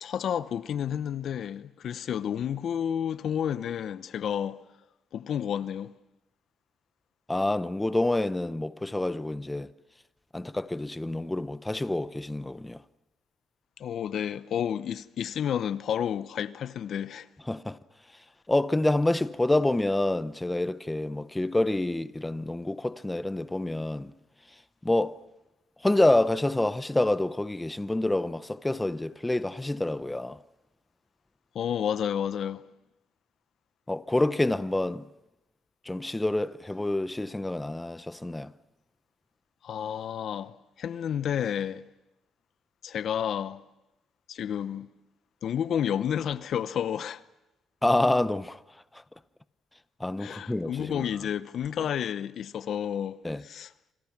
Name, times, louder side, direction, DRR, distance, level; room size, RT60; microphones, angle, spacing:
voice 1, 0.0-4.6 5.1-5.9 13.8-17.3 31.5-32.6 39.6-41.8 42.8-43.6 44.3-44.9 45.4-47.2 50.2-53.2 53.4-53.7, left 9 dB, 65° left, 0.9 m, -30 dB
voice 2, 7.3-9.7 10.3-12.8 17.5-17.8 18.5-24.1 24.8-25.2 25.8-30.4 33.9-35.1 35.8-38.5 47.8-48.6 48.9-49.0 50.0-51.1 53.2-53.4, left 1 dB, 10° left, 0.8 m, -27 dB
27.0 x 26.5 x 6.0 m
cardioid pair, 90°, 0 cm